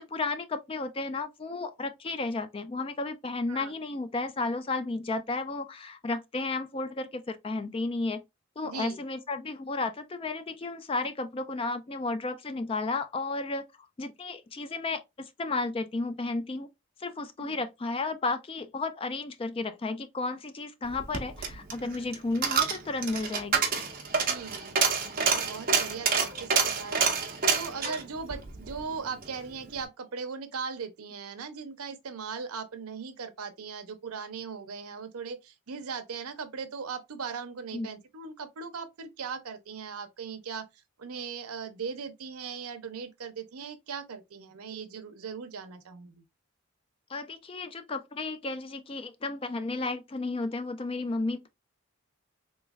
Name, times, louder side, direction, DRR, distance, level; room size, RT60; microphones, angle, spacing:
voice 1, 0.0-8.2 8.6-13.6 14.0-16.7 17.0-23.7 37.7-37.9 47.1-51.5, left 3 dB, 25° left, 0.3 m, -33 dB
voice 2, 8.6-9.0 17.4-17.6 24.3-27.3 27.5-46.2, right 5 dB, 90° right, 0.6 m, -39 dB
Coin (dropping), 20.9-29.3 29.7-29.8, right 5 dB, 40° right, 0.7 m, -28 dB
3.5 x 3.1 x 2.3 m
head